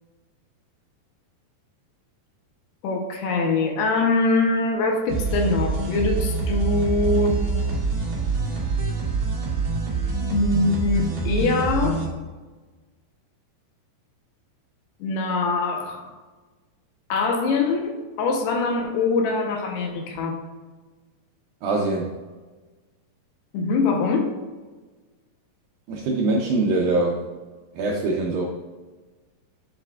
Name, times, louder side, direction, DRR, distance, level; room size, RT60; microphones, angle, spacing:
voice 1, 2.8-7.4 10.3-12.0 15.0-16.1 17.1-20.4 23.5-24.3, left 3 dB, 75° left, 2 dB, 2.8 m, -23 dB
sound 1, 5.1-12.1, right 4 dB, 30° right, 1.8 m, -25 dB
voice 2, 21.6-22.1 25.9-27.2 27.8-28.5, right 2 dB, 80° right, -1 dB, 2.1 m, -23 dB
9.2 x 7.6 x 2.4 m, 1.3 s
omnidirectional pair, 5.0 m